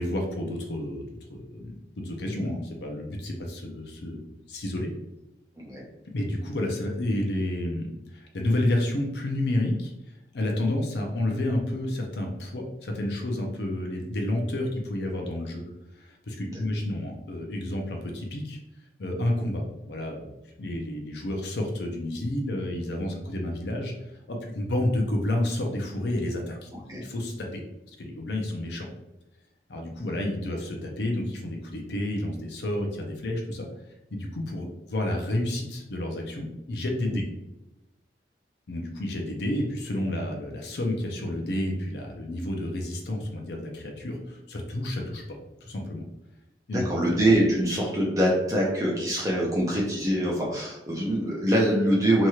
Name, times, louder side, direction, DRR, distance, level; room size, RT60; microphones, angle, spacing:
voice 1, 0.0-4.9 6.1-9.9 10.3-15.6 16.0-18.6 19.0-20.3 20.6-23.9 24.3-27.6 28.0-28.9 29.7-33.7 34.1-37.2 38.7-46.0 46.7-46.9, left 1 dB, 75° left, 2 dB, 0.5 m, -30 dB
voice 2, 5.6-5.9 26.9-27.0 37.1-37.2 46.7-52.3, right 1 dB, 20° right, -4 dB, 0.5 m, -24 dB
3.0 x 2.8 x 2.3 m, 0.94 s
head